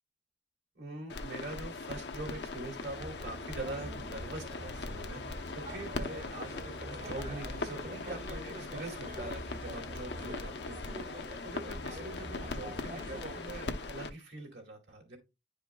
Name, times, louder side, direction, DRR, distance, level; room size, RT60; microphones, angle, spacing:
voice 1, 0.7-15.2, right 2 dB, 90° right, 0 dB, 2.4 m, -44 dB
sound 1, 1.1-14.1, left 3 dB, 75° left, 0.8 m, -40 dB
sound 2, 2.9-13.6, right 1 dB, 45° right, 3.3 m, -45 dB
10.5 x 5.0 x 2.3 m, 0.24 s
head